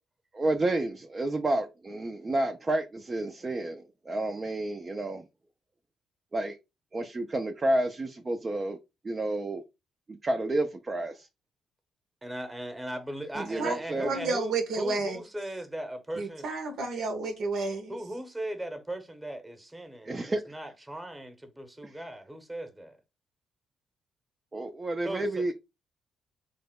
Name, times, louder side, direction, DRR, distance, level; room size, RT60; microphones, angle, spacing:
voice 1, 0.3-5.2 6.3-6.6 6.9-8.8 9.0-9.6 10.1-11.3 13.4-14.1 20.1-20.4 21.8-21.9 24.5-25.5, right 2 dB, 30° right, 0.5 m, -30 dB
voice 2, 12.2-16.4 17.9-23.0 25.0-25.2, right 1 dB, 10° right, 1.0 m, -38 dB
voice 3, 13.3-13.8 14.0-15.2 16.1-17.9, right 3 dB, 65° right, 0.7 m, -31 dB
3.3 x 2.1 x 3.6 m
hypercardioid pair, 50°, 0 cm